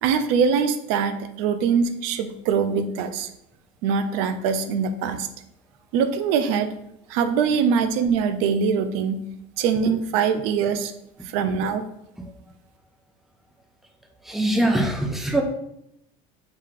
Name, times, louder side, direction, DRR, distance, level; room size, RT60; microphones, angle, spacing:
voice 1, 0.0-3.3 3.8-5.3 5.9-6.7 7.1-9.2 9.6-10.9 11.2-11.8, right 6 dB, 75° right, 9 dB, 0.5 m, -23 dB
voice 2, 14.3-15.4, right 1 dB, ahead, 3 dB, 0.5 m, -22 dB
5.0 x 2.8 x 3.6 m, 0.80 s
supercardioid pair, 125°, 18 cm